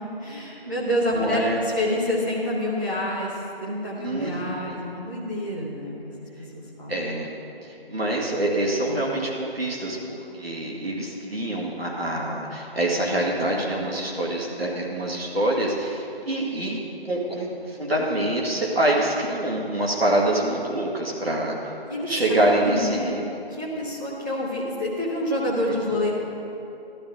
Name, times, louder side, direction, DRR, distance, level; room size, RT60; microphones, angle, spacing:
voice 1, 0.2-6.0 6.5-6.9 21.9-26.1, left 1 dB, 20° right, -8 dB, 0.8 m, -28 dB
voice 2, 1.1-1.6 4.0-4.8 6.9-7.3 7.6-16.8 17.0-21.6 22.1-23.2 25.7-25.8, right 1 dB, 70° right, -3 dB, 2.0 m, -25 dB
12.0 x 11.0 x 3.7 m, 2.8 s
figure-of-eight pair, 165°, 31 cm